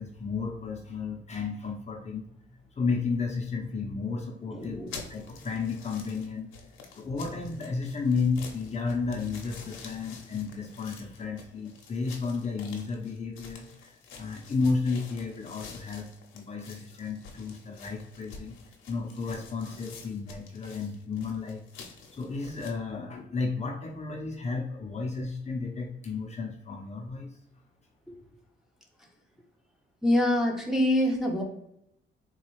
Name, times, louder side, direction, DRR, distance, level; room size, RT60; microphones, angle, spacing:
voice 1, 0.0-2.3 2.8-4.8 5.1-6.5 7.0-16.1 16.3-18.6 18.9-21.6 22.1-27.4, left 4 dB, 35° left, 1 dB, 0.6 m, -32 dB
voice 2, 4.5-4.9 28.1-28.2 30.0-31.4, left 1 dB, ahead, -1 dB, 0.8 m, -25 dB
sound 1, 4.6-22.7, left 5 dB, 80° left, 0.8 m, -48 dB
4.0 x 2.3 x 3.0 m, 0.77 s
cardioid pair, 90°, 20 cm